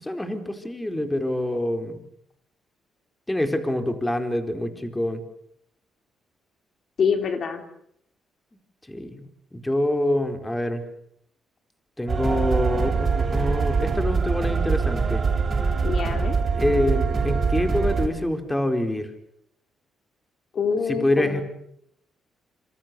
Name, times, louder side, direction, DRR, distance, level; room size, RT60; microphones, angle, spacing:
voice 1, 0.0-2.0 3.3-5.2 8.9-9.3 9.5-10.8 12.0-15.2 16.5-19.1 20.9-21.4, left 1 dB, 10° left, 7 dB, 4.4 m, -26 dB
voice 2, 7.0-7.6 15.8-16.3 20.5-21.4, left 6 dB, 55° left, 7 dB, 3.7 m, -25 dB
sound 1, 12.1-18.1, right 5 dB, 40° right, 7.0 m, -23 dB
27.5 x 26.5 x 6.9 m, 0.73 s
cardioid pair, 90°, 0 cm